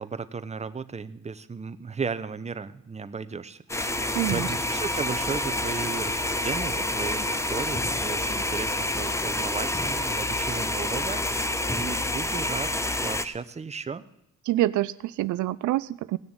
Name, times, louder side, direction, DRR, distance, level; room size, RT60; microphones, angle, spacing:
voice 1, 0.0-12.7 13.0-14.0, right 5 dB, 20° right, 12 dB, 0.8 m, -35 dB
sound 1, 3.7-13.2, left 1 dB, 10° left, 0.8 m, -28 dB
voice 2, 4.1-4.5 14.5-16.2, right 15 dB, 75° right, 17 dB, 0.5 m, -26 dB
17.5 x 6.8 x 8.8 m, 0.81 s
cardioid pair, 90°, 30 cm